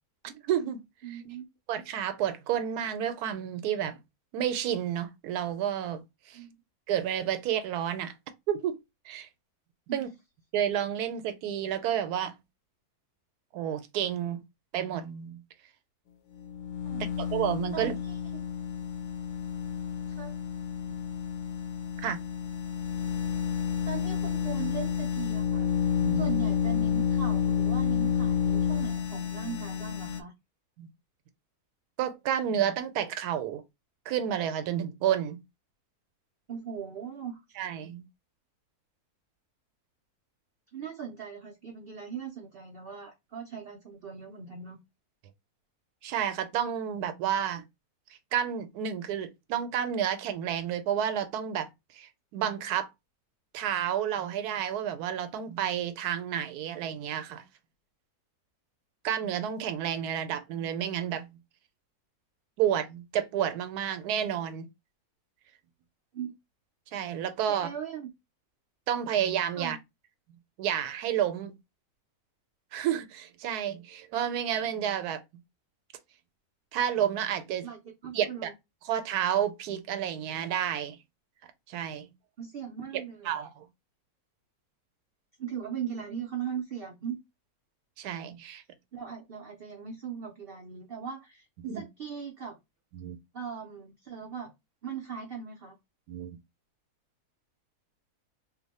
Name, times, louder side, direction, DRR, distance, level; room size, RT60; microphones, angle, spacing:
voice 1, 0.2-0.8 1.7-4.0 4.3-6.0 6.3-6.4 6.9-8.1 8.5-8.8 9.1-9.3 9.9-10.1 10.5-12.3 13.5-14.4 14.7-15.4 17.0-17.9 22.0-22.2 26.0-26.3 30.8-30.9 32.0-33.6 34.1-35.4 37.6-38.0 46.0-47.6 48.3-51.7 51.9-52.9 53.5-57.4 59.0-61.3 62.6-64.6 66.9-67.7 68.9-69.8 70.6-71.5 72.7-75.2 76.7-77.7 78.1-78.5 78.9-81.0 81.7-82.1 83.3-83.5 88.0-88.6 91.6-91.8 92.9-93.2 96.1-96.4, right 9 dB, 85° right, 1.1 m, -30 dB
voice 2, 1.0-1.5 6.3-6.6 9.9-10.1 16.8-17.1 17.7-18.2 20.1-20.3 23.9-25.7 26.1-30.3 36.5-37.4 40.7-44.8 66.1-66.3 67.5-68.1 69.6-69.8 77.6-78.5 82.4-83.3 85.4-87.2 88.9-91.5 91.7-92.6 93.3-94.5 94.8-95.8, right 7 dB, 60° right, 0.6 m, -39 dB
sound 1, 16.3-30.2, left 8 dB, 70° left, 0.8 m, -30 dB
2.8 x 2.1 x 4.0 m
omnidirectional pair, 1.6 m